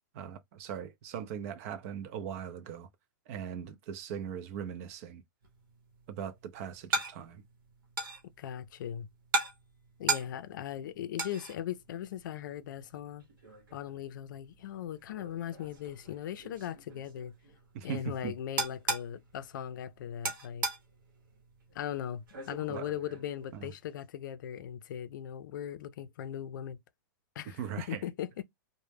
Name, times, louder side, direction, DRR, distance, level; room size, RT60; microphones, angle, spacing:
voice 1, 0.1-2.9 3.3-5.2 6.1-7.4 17.7-18.3 22.7-22.8 23.5-23.7 27.6-28.0, right 8 dB, 45° right, 0.4 m, -39 dB
sound 1, 5.4-24.0, right 3 dB, 85° right, 0.9 m, -40 dB
voice 2, 8.4-9.1 10.0-13.3 13.7-17.3 17.8-20.7 21.7-26.8 27.4-28.4, left 10 dB, 70° left, 0.4 m, -39 dB
2.1 x 2.1 x 3.2 m
hypercardioid pair, 145°, 11 cm